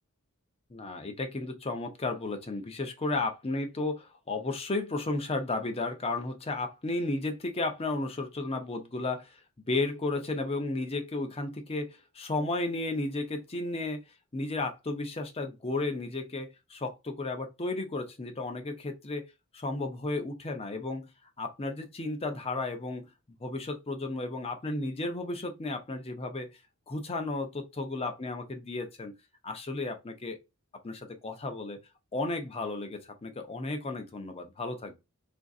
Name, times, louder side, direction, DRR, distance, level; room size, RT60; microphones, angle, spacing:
voice 1, 0.7-9.3 9.7-14.0 14.3-19.3 19.5-21.1 21.4-23.1 23.4-26.5 26.9-29.1 29.4-30.4 30.8-31.8 32.1-35.0, left 2 dB, 25° left, 0.6 m, -33 dB
3.7 x 2.5 x 2.3 m
head